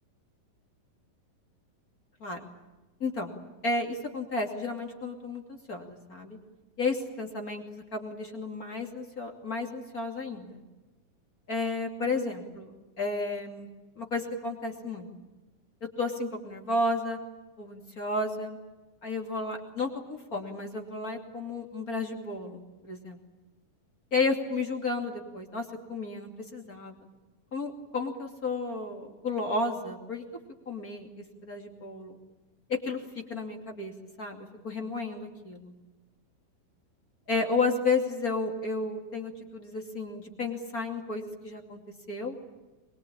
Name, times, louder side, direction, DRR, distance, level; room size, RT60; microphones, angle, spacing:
voice 1, 3.0-3.3 3.6-6.4 6.8-10.6 11.5-12.7 13.0-13.7 14.0-15.1 16.0-17.2 17.6-18.6 19.0-23.2 24.1-25.6 25.9-26.9 27.5-30.2 30.7-32.2 32.8-33.0 33.3-33.9 34.2-35.7 37.3-41.8 42.1-42.4, left 3 dB, 25° left, 3 dB, 2.6 m, -32 dB
23.5 x 23.0 x 8.8 m, 1.1 s
omnidirectional pair, 4.2 m